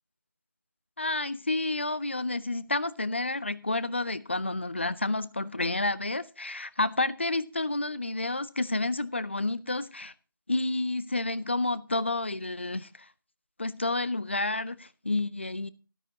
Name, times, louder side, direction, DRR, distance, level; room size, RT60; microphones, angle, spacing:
voice 1, 1.0-10.1 10.5-13.1 13.6-15.7, left 2 dB, 30° left, 0.5 m, -30 dB
13.0 x 12.5 x 2.7 m
figure-of-eight pair, 170°, 12 cm